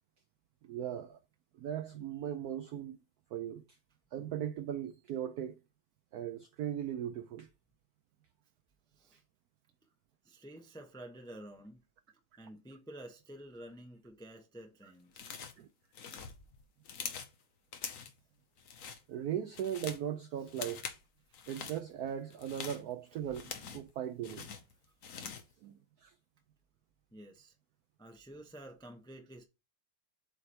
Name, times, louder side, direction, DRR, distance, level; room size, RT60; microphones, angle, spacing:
voice 1, 0.6-1.2 1.6-3.0 3.3-3.6 4.1-5.6 6.1-7.5 15.6-15.7 19.1-20.8 21.5-24.5 25.6-25.7 26.0-26.1, right 10 dB, 80° right, 0.8 m, -38 dB
voice 2, 10.2-11.8 12.4-15.3 20.4-20.5 23.2-23.3 25.2-25.3 27.1-27.5 28.0-29.4, right 1 dB, 5° left, 0.4 m, -50 dB
sound 1, 15.1-15.6 15.9-17.3 17.7-18.2 18.6-19.0 19.4-20.1 20.5-21.0 21.3-21.8 22.3-23.9 24.2-25.5, left 6 dB, 50° left, 1.1 m, -44 dB
7.8 x 3.2 x 4.4 m
omnidirectional pair, 2.2 m